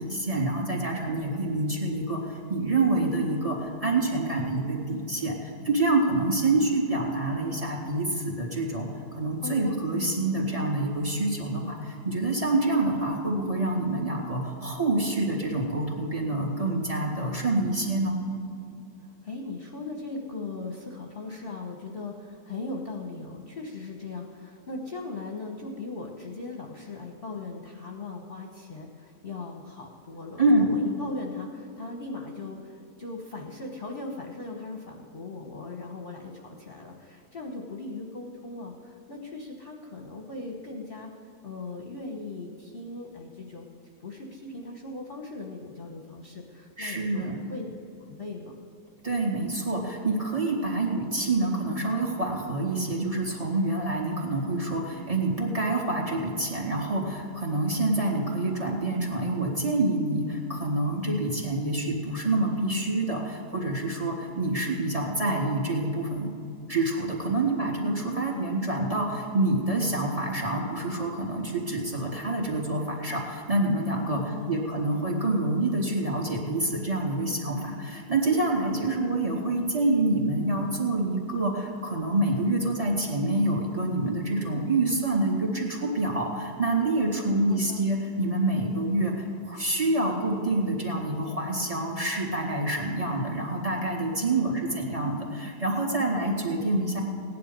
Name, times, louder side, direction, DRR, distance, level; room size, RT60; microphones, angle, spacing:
voice 1, 0.0-18.2 30.4-30.7 46.8-47.3 49.0-66.3 66.7-97.0, right 2 dB, 20° right, -1 dB, 2.3 m, -27 dB
voice 2, 9.4-9.8 19.0-41.1 41.4-43.7 44.0-47.7 48.0-48.5 67.3-68.4 74.1-74.7 78.8-79.0 87.1-87.8 94.3-95.1, left 3 dB, 35° left, 0 dB, 1.3 m, -39 dB
16.5 x 10.5 x 5.4 m, 2.6 s
omnidirectional pair, 1.8 m